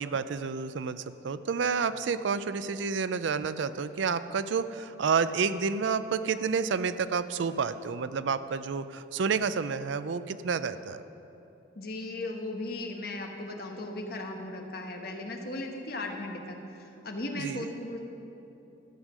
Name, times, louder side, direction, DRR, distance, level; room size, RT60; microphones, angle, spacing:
voice 1, 0.0-11.0 17.3-17.7, right 5 dB, 70° right, 13 dB, 0.4 m, -30 dB
voice 2, 11.7-18.0, left 2 dB, 50° left, 2 dB, 1.2 m, -37 dB
13.0 x 8.1 x 6.1 m, 2.9 s
head